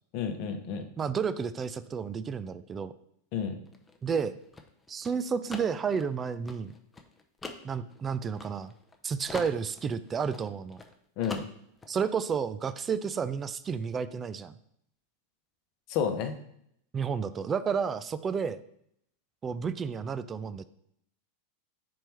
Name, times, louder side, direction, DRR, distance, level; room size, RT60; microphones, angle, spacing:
voice 1, 0.1-0.8 3.3-3.6 11.2-11.5 15.9-16.3, left 7 dB, 45° left, 6 dB, 0.9 m, -30 dB
voice 2, 1.0-2.9 4.0-4.4 4.9-6.7 7.6-8.7 9.0-10.8 11.9-14.5 16.9-18.6 19.4-20.6, right 6 dB, 20° right, 13 dB, 0.3 m, -31 dB
sound 1, 3.7-9.0 9.3-10.9 11.2-11.9, left 3 dB, 10° left, 0.7 m, -44 dB
4.7 x 4.4 x 5.4 m, 0.71 s
figure-of-eight pair, 90°, 0 cm